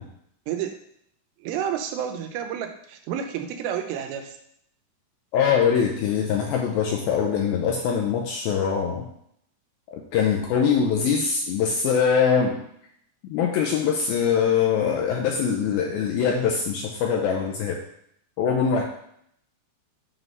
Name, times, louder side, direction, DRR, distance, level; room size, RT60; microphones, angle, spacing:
voice 1, 0.5-0.8 1.4-4.4, right 9 dB, 85° right, 5 dB, 2.9 m, -30 dB
voice 2, 5.3-9.1 9.9-12.6 13.2-17.8 18.4-18.8, left 7 dB, 80° left, 1 dB, 2.2 m, -23 dB
7.7 x 3.1 x 5.3 m, 0.71 s
omnidirectional pair, 4.9 m